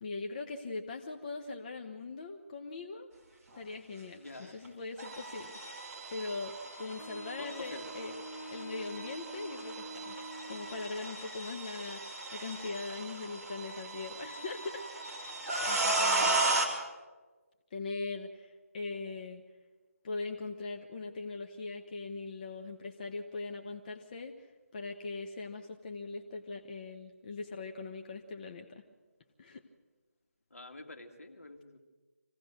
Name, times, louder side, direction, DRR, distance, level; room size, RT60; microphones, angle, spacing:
voice 1, 0.0-3.1 3.5-8.2 8.5-10.2 10.5-14.8 15.6-16.4 17.7-19.4 20.0-28.8 29.4-29.6, left 3 dB, 30° left, 3 dB, 1.1 m, -41 dB
voice 2, 4.2-4.6 7.6-7.9 16.0-16.7 30.5-31.8, left 2 dB, 70° left, 4 dB, 2.8 m, -47 dB
sound 1, 4.6-4.7 5.0-16.7, right 2 dB, 15° right, 3.3 m, -35 dB
Wind instrument woodwind instrument, 7.0-11.1, right 1 dB, 10° left, 6.4 m, -46 dB
25.5 x 17.0 x 6.4 m, 1.3 s
figure-of-eight pair, 160°, 8 cm